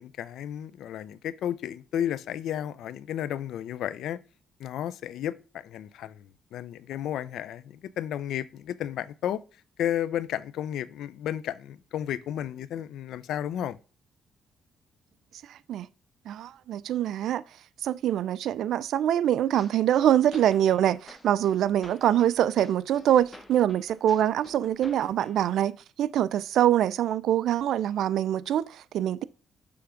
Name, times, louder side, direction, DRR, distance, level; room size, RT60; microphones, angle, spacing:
voice 1, 0.0-4.2 4.6-9.4 9.8-13.8, left 10 dB, 80° left, 0.4 m, -33 dB
voice 2, 15.5-15.9 16.3-17.4 17.8-29.2, right 11 dB, 75° right, 0.3 m, -24 dB
sound 1, 19.6-25.6, left 1 dB, 15° left, 1.2 m, -51 dB
7.0 x 3.4 x 5.0 m
cardioid pair, 90°, 0 cm